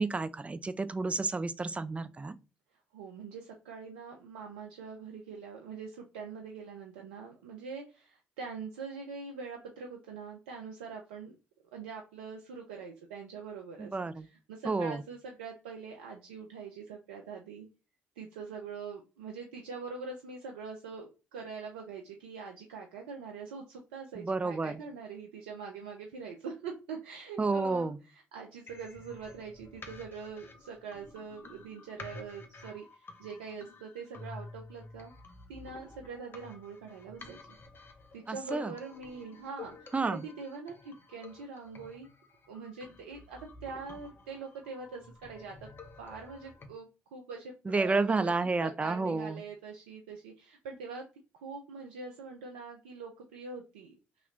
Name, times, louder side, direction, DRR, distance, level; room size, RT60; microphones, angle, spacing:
voice 1, 0.0-2.3 13.8-14.3 14.6-15.0 24.2-24.8 27.4-28.0 38.3-38.7 39.9-40.3 47.7-49.4, right 3 dB, 25° right, 0.4 m, -30 dB
voice 2, 2.9-11.3 11.7-17.7 18.2-35.1 35.5-37.5 38.1-42.1 42.5-45.7 46.0-51.0 51.3-53.9, right 5 dB, 90° right, 0.4 m, -43 dB
sound 1, 28.7-46.7, left 3 dB, 40° left, 0.7 m, -51 dB
3.0 x 2.9 x 2.4 m
hypercardioid pair, 50°, 6 cm